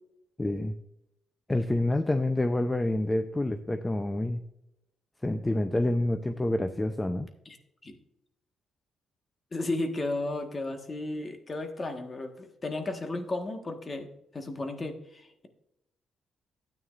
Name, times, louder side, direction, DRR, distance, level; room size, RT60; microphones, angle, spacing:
voice 1, 0.4-0.7 1.5-4.4 5.2-7.3, left 1 dB, 15° left, 8 dB, 0.6 m, -28 dB
voice 2, 9.5-14.1 14.3-15.5, left 2 dB, 30° left, 6 dB, 1.5 m, -34 dB
12.5 x 9.1 x 2.5 m, 0.84 s
cardioid pair, 90°, 0 cm